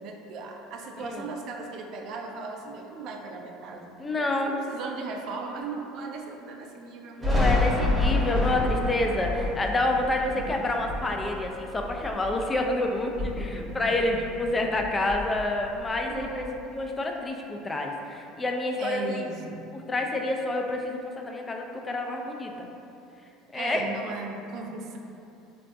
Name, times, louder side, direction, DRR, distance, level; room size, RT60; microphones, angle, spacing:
voice 1, 0.0-7.2 10.3-10.9 13.2-14.5 16.1-16.6 18.8-19.8 23.5-25.0, right 3 dB, 60° right, 2 dB, 0.3 m, -38 dB
voice 2, 4.0-4.5 7.2-16.4 16.7-19.0 19.7-22.7 23.5-23.8, left 2 dB, 20° left, 2 dB, 0.3 m, -28 dB
Thunder, 7.2-12.7 13.0-14.5 14.7-16.5, left 2 dB, 20° right, 0.8 m, -29 dB
3.6 x 2.3 x 2.5 m, 2.7 s
supercardioid pair, 100°, 0 cm